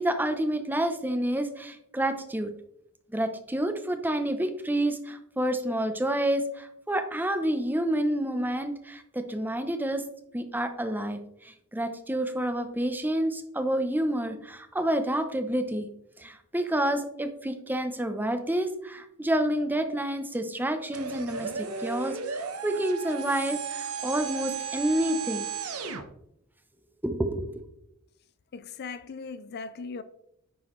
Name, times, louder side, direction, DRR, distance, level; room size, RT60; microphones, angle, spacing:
voice 1, 0.0-2.5 3.1-10.0 10.3-15.9 16.2-25.5 27.0-27.7, right 1 dB, 10° right, 0.7 m, -29 dB
sound 1, 20.9-26.0, right 6 dB, 70° right, 1.0 m, -34 dB
voice 2, 28.5-30.0, left 4 dB, 45° left, 0.4 m, -38 dB
9.5 x 6.2 x 3.1 m
head